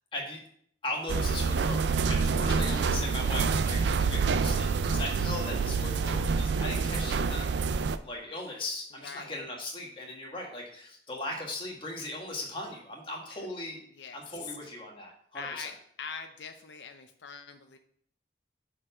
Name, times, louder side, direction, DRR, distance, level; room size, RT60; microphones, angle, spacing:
voice 1, 0.8-1.8 2.1-13.8 14.1-15.7, left 2 dB, 30° left, -1 dB, 1.6 m, -38 dB
sound 1, 1.1-8.0, right 5 dB, 80° right, 0.4 m, -27 dB
voice 2, 2.5-3.7 9.0-9.4 13.3-13.5 13.9-14.6 15.3-15.7 16.0-17.8, left 6 dB, 85° left, 7 dB, 0.6 m, -44 dB
6.2 x 4.6 x 5.4 m, 0.63 s
head